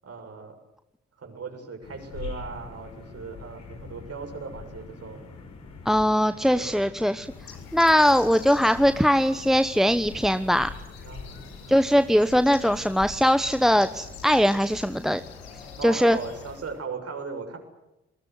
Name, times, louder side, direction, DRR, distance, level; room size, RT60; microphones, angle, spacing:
voice 1, 0.0-0.5 1.2-5.2 6.5-6.8 11.0-11.4 15.8-17.6, right 5 dB, 55° right, 5 dB, 7.0 m, -37 dB
sound 1, 1.8-16.6, left 4 dB, 65° left, 5.8 m, -44 dB
voice 2, 5.8-7.3 7.7-10.7 11.7-15.2 15.8-16.2, equal, ahead, 12 dB, 1.1 m, -21 dB
Bird, 7.1-16.8, left 7 dB, 90° left, 2.4 m, -46 dB
27.0 x 20.5 x 8.1 m, 0.92 s
hypercardioid pair, 40°, 30 cm